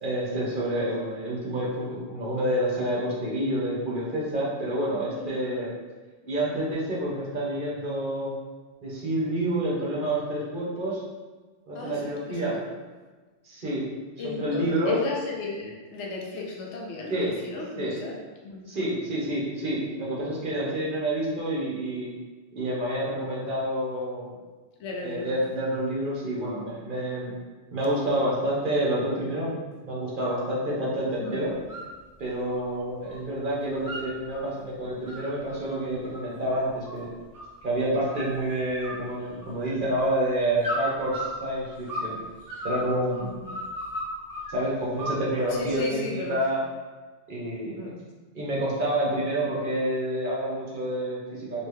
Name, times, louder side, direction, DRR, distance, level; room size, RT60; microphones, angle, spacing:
voice 1, 0.0-5.7 6.3-8.3 8.8-11.0 11.7-12.5 13.4-13.8 14.2-15.0 17.1-17.3 17.8-17.9 18.7-22.1 22.5-24.3 25.0-27.3 27.7-29.6 29.8-31.5 32.2-37.1 37.6-42.2 42.6-43.4 44.5-46.6 47.3-47.9 48.3-51.7, right 1 dB, 50° right, -6 dB, 0.9 m, -28 dB
voice 2, 11.7-12.6 14.2-18.2 18.4-18.6 24.8-25.4 31.2-31.4 43.4-43.6 45.5-46.4 47.7-48.0, left 3 dB, 75° left, -2 dB, 1.0 m, -35 dB
sound 1, 31.5-31.9 32.3-33.2 33.5-34.4 34.9-37.6 38.0-38.5 38.8-39.8 40.6-42.1 42.5-44.5 45.0-45.7, equal, 20° right, 0.6 m, -35 dB
3.2 x 2.6 x 3.2 m, 1.3 s
omnidirectional pair, 1.2 m